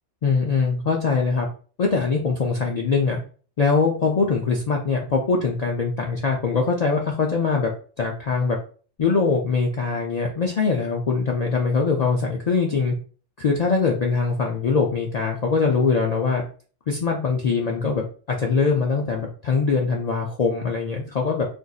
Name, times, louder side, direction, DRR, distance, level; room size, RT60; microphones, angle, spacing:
voice 1, 0.2-1.5 1.8-3.2 3.6-7.7 8.0-8.6 9.0-12.9 13.4-16.4 16.9-21.5, left 4 dB, 70° left, 0 dB, 0.3 m, -22 dB
3.9 x 2.5 x 2.3 m, 0.41 s
omnidirectional pair, 1.2 m